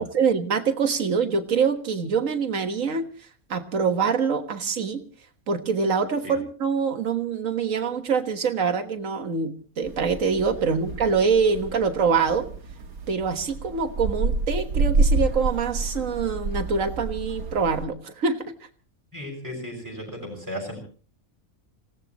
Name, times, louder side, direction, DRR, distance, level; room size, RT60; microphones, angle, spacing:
voice 1, 0.0-3.1 3.5-5.0 5.5-12.5 13.1-18.5, right 5 dB, 65° right, 7 dB, 1.8 m, -25 dB
sound 1, 9.8-17.9, right 3 dB, 90° right, 1.9 m, -28 dB
voice 2, 19.1-20.8, equal, 10° right, 0 dB, 6.3 m, -35 dB
27.5 x 17.5 x 3.0 m, 0.40 s
omnidirectional pair, 1.5 m